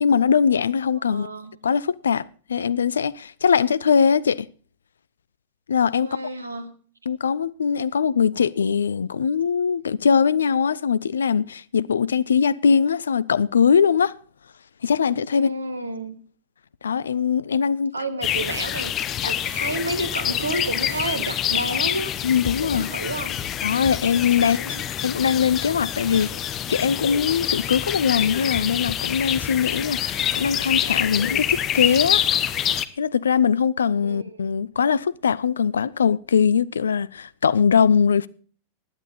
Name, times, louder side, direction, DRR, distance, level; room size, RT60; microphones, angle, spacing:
voice 1, 0.0-1.3 1.6-2.2 2.5-4.5 5.7-6.1 7.1-14.2 14.8-15.5 16.8-17.9 19.2-19.3 22.2-22.9 23.6-24.6 25.0-26.3 26.7-32.3 33.0-38.3, left 6 dB, 70° left, 0.5 m, -21 dB
voice 2, 1.0-1.5 6.0-6.7 15.3-16.1 17.9-22.1 22.4-23.4 24.3-24.8 26.0-26.4 33.8-34.5, right 1 dB, 80° right, 1.7 m, -31 dB
sound 1, 18.2-32.9, left 10 dB, 30° left, 0.9 m, -26 dB
16.0 x 10.5 x 4.1 m
figure-of-eight pair, 90°, 0 cm